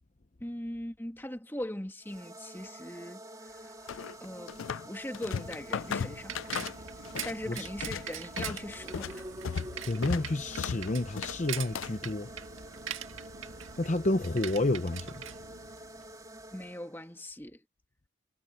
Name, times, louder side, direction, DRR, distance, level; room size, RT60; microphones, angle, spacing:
voice 1, 0.4-4.0 4.2-4.6 4.8-6.3 7.2-9.3 16.5-17.6, left 1 dB, 10° left, 2.0 m, -40 dB
sound 1, 2.0-17.2, right 1 dB, 20° right, 2.6 m, -48 dB
sound 2, 3.9-4.9 5.1-7.4 7.7-12.1, left 6 dB, 80° left, 0.5 m, -36 dB
Bicycle, 5.3-16.2, right 8 dB, 80° right, 1.6 m, -43 dB
voice 2, 9.9-12.3 13.8-15.1, left 2 dB, 35° left, 0.8 m, -30 dB
head